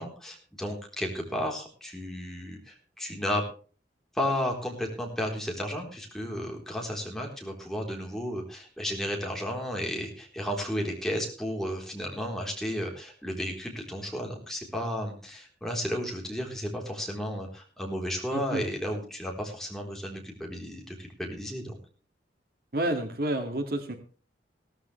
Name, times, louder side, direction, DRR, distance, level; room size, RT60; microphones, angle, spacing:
voice 1, 0.0-3.4 4.1-21.8, equal, ahead, 0 dB, 3.8 m, -33 dB
voice 2, 18.3-18.6 22.7-24.0, right 1 dB, 55° right, 5 dB, 2.2 m, -29 dB
17.0 x 13.5 x 3.3 m, 0.39 s
head